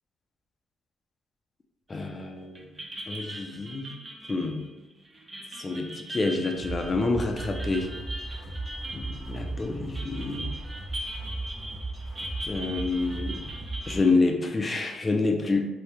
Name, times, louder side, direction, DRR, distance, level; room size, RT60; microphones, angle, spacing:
voice 1, 1.9-2.6 3.1-3.9 4.3-4.7 5.6-7.9 8.9-10.5 12.5-13.4 13.9-15.6, left 3 dB, 30° left, 3 dB, 0.5 m, -28 dB
sound 1, 2.0-2.3 2.6-14.1, right 1 dB, 20° right, 0.6 m, -41 dB
sound 2, 6.5-14.0, right 2 dB, 40° right, 1.5 m, -36 dB
2.8 x 2.8 x 3.3 m, 1.0 s
cardioid pair, 90°, 0 cm